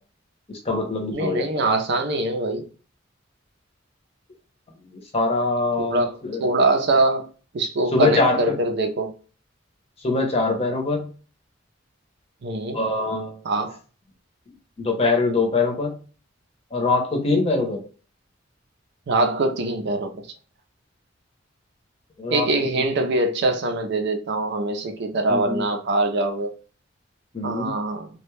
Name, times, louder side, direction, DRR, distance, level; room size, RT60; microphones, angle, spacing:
voice 1, 0.5-1.5 5.1-6.5 7.9-8.4 10.0-11.1 12.7-13.4 14.8-15.9 16.7-17.8 22.2-22.5 22.7-22.8 25.3-25.7 27.3-27.7, left 3 dB, 30° left, 0.7 m, -23 dB
voice 2, 1.1-2.6 5.8-7.3 7.5-9.1 12.4-12.8 13.4-13.8 19.1-20.2 22.3-26.5 27.4-28.1, right 2 dB, 60° right, 0.5 m, -23 dB
2.2 x 2.1 x 3.1 m
head